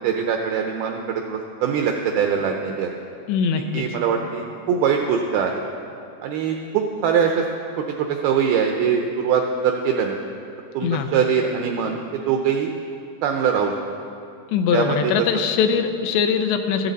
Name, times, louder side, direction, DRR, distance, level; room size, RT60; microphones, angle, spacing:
voice 1, 0.0-2.9 3.7-5.6 6.2-7.5 7.8-10.2 10.7-12.7 13.2-13.7 14.7-15.1, right 7 dB, 85° right, 3 dB, 2.2 m, -22 dB
voice 2, 3.3-3.9 10.8-11.1 14.5-16.9, left 6 dB, 85° left, 6 dB, 2.9 m, -21 dB
14.0 x 13.5 x 4.0 m, 2.6 s
omnidirectional pair, 5.0 m